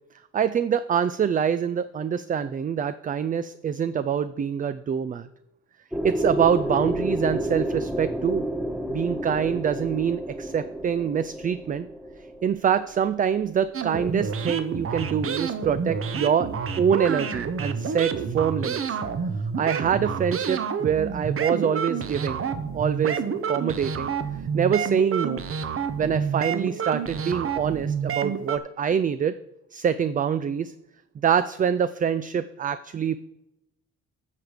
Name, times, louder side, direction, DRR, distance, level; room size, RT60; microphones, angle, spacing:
voice 1, 0.3-5.3 6.0-8.5 8.9-11.9 12.4-16.5 16.8-19.0 19.6-22.4 22.7-23.2 23.5-24.1 24.5-25.4 26.0-29.3 29.7-30.7 31.2-33.2, right 7 dB, 30° right, 13 dB, 0.3 m, -25 dB
sound 1, 5.9-13.7, right 1 dB, 5° right, 0.8 m, -30 dB
sound 2, 13.7-28.6, right 6 dB, 45° right, 0.9 m, -29 dB
10.5 x 6.4 x 4.9 m, 0.90 s
cardioid pair, 90°, 30 cm